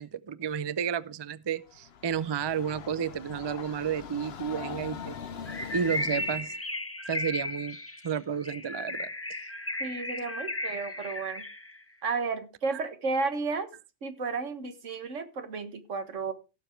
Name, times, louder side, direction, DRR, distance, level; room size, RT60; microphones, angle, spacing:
voice 1, 0.0-5.2 5.7-6.5 7.1-7.8 8.0-9.1, right 7 dB, 35° right, 0.4 m, -31 dB
Train, 1.7-6.6, left 7 dB, 60° left, 1.0 m, -42 dB
Bird, 5.5-11.8, left 2 dB, 10° left, 1.0 m, -35 dB
voice 2, 9.8-11.4 12.0-13.7 14.0-16.3, right 4 dB, 85° right, 1.8 m, -32 dB
16.5 x 7.0 x 4.5 m
omnidirectional pair, 1.2 m